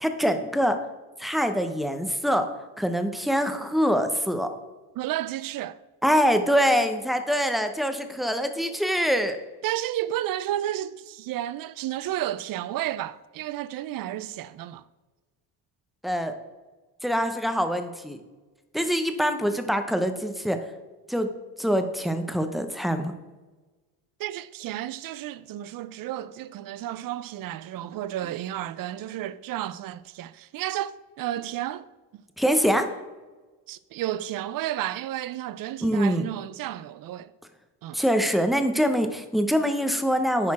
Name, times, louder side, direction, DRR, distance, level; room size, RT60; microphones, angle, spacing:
voice 1, 0.0-0.8 1.2-2.5 2.8-4.5 6.0-9.4 16.0-16.3 17.0-18.2 18.7-20.6 21.1-21.3 21.6-23.1 32.4-32.9 35.8-36.3 37.9-40.5, equal, ahead, 0.7 m, -24 dB
voice 2, 5.0-5.8 9.6-14.8 24.2-30.9 31.2-31.9 32.1-32.2 33.7-37.3 37.8-38.0, right 13 dB, 50° right, 0.5 m, -32 dB
10.5 x 4.3 x 4.2 m
cardioid pair, 95°, 44 cm